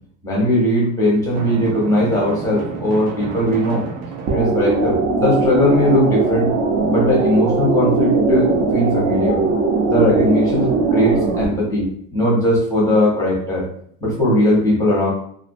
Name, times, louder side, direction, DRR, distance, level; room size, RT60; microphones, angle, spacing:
voice 1, 0.2-3.8 4.3-6.5 6.8-9.4 9.8-13.6 14.0-15.1, left 1 dB, 10° left, -4 dB, 0.6 m, -18 dB
Drum, 1.3-5.1, right 5 dB, 80° right, 0.7 m, -31 dB
sound 1, 4.3-11.4, right 4 dB, 35° right, 0.4 m, -19 dB
2.5 x 2.1 x 2.5 m, 0.65 s
cardioid pair, 160°, 42 cm